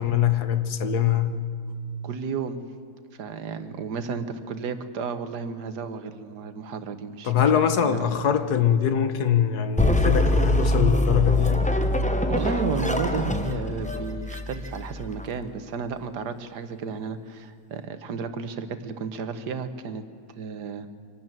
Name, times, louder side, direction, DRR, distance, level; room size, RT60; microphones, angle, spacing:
voice 1, 0.0-1.4 7.2-11.6, left 8 dB, 70° left, 1.6 m, -23 dB
voice 2, 2.0-2.6 3.2-7.5 7.8-8.1 12.3-20.0 20.4-20.9, right 5 dB, 80° right, 1.7 m, -32 dB
sound 1, 9.8-15.2, left 1 dB, 5° left, 0.8 m, -24 dB
24.0 x 12.0 x 9.0 m
omnidirectional pair, 1.8 m